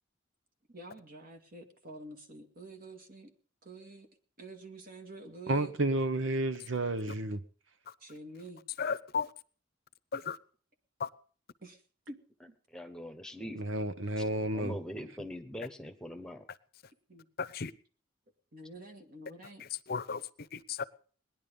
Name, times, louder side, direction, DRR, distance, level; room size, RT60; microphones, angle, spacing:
voice 1, 0.7-3.3 3.6-4.1 4.4-5.7 8.0-8.6 11.6-11.8 12.1-12.5 17.1-17.3 18.5-19.6, right 2 dB, 50° right, 2.2 m, -48 dB
voice 2, 5.5-7.4 13.5-14.8, right 2 dB, 90° right, 1.1 m, -31 dB
voice 3, 8.8-9.3 10.1-10.4 11.0-11.1 17.4-17.7 19.6-20.8, left 6 dB, 55° left, 0.7 m, -35 dB
voice 4, 12.7-13.6 14.5-16.5, equal, 5° left, 1.2 m, -42 dB
19.5 x 11.0 x 5.3 m
head